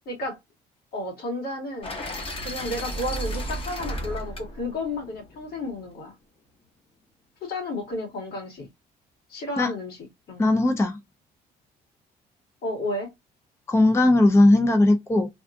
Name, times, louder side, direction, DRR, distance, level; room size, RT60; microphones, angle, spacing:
voice 1, 0.1-0.4 0.9-1.9 2.4-6.1 7.4-8.7 9.3-10.0 10.3-10.4 12.6-13.1, left 1 dB, 70° left, 2.2 m, -32 dB
sound 1, 1.8-5.9, equal, 30° left, 1.1 m, -34 dB
voice 2, 10.4-11.0 13.7-15.3, left 2 dB, 15° left, 0.5 m, -18 dB
3.4 x 2.3 x 2.5 m
cardioid pair, 110°, 17 cm